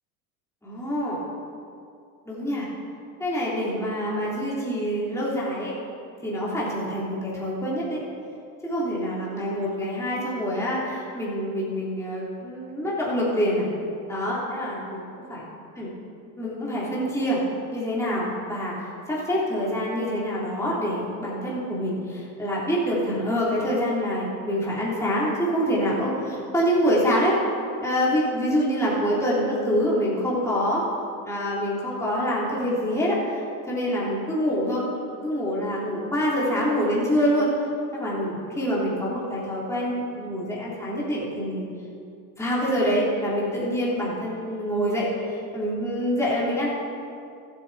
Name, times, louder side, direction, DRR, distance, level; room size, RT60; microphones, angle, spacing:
voice 1, 0.6-1.2 2.2-2.7 3.2-5.7 6.2-8.0 8.6-13.7 14.1-15.0 15.3-15.4 15.7-15.9 16.4-17.4 17.7-18.7 19.1-27.4 27.8-30.8 31.2-34.8 35.2-37.5 38.0-41.6 42.4-46.7, equal, 5° left, -7 dB, 3.3 m, -26 dB
14.5 x 9.0 x 4.2 m, 2.4 s
supercardioid pair, 120°, 45 cm